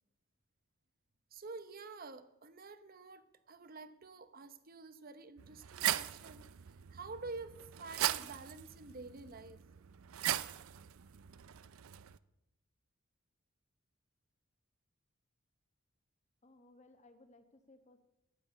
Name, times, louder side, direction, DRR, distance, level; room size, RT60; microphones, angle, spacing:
voice 1, 1.3-6.5 6.9-9.6, right 3 dB, 45° right, 12 dB, 0.8 m, -49 dB
fence Yank, 5.4-12.2, right 12 dB, 85° right, 0.5 m, -39 dB
voice 2, 16.4-18.1, left 2 dB, 35° left, 7 dB, 1.3 m, -62 dB
10.5 x 9.4 x 8.1 m, 0.90 s
head